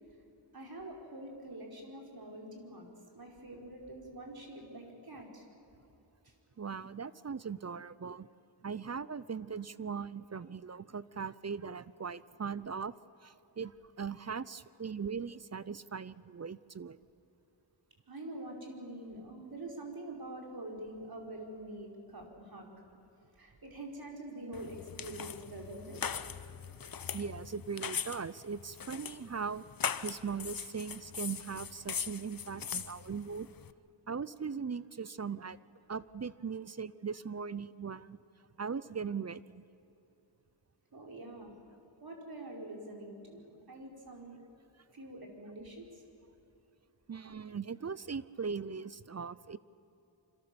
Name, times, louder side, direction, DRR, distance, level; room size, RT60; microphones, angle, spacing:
voice 1, 0.5-2.8 3.1-5.4 6.2-6.3 18.1-22.7 23.4-26.0 40.9-41.5 42.0-43.4 43.7-44.4 44.9-46.0, right 1 dB, 50° right, 0 dB, 5.0 m, -45 dB
voice 2, 6.6-8.3 8.6-12.9 13.2-17.0 27.1-29.7 30.0-33.5 34.1-35.6 35.9-38.2 38.6-39.6 47.1-49.6, right 6 dB, 35° right, 17 dB, 0.6 m, -39 dB
sound 1, 24.5-33.7, left 7 dB, 50° left, 0.9 m, -40 dB
27.0 x 26.0 x 7.0 m, 2.9 s
wide cardioid pair, 85°, 45 cm